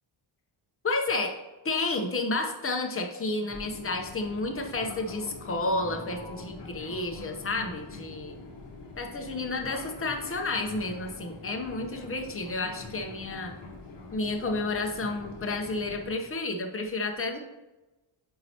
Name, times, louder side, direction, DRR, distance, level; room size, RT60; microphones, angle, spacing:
voice 1, 0.8-1.4 1.6-8.3 9.0-13.6 14.1-17.4, left 2 dB, 25° left, 3 dB, 0.8 m, -31 dB
Fixed-wing aircraft airplane, 3.5-16.1, left 3 dB, 60° left, 1.2 m, -44 dB
8.4 x 4.5 x 2.9 m, 1.1 s
wide cardioid pair, 150°, 49 cm